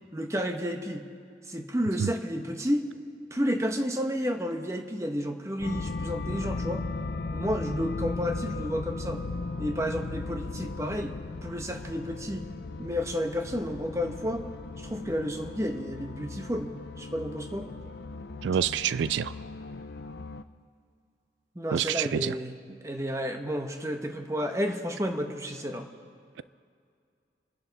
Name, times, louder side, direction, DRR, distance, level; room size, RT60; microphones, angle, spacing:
voice 1, 0.1-1.0 1.4-2.8 3.3-6.8 7.3-9.2 9.6-11.2 11.4-12.4 12.8-14.4 14.8-16.7 17.0-17.7 21.5-25.9, equal, 15° right, 5 dB, 1.0 m, -31 dB
sound 1, 5.6-20.4, left 3 dB, 65° left, 0.5 m, -37 dB
voice 2, 18.4-19.3 21.7-22.4, right 8 dB, 85° right, 16 dB, 0.3 m, -27 dB
29.0 x 10.5 x 4.0 m, 2.4 s
head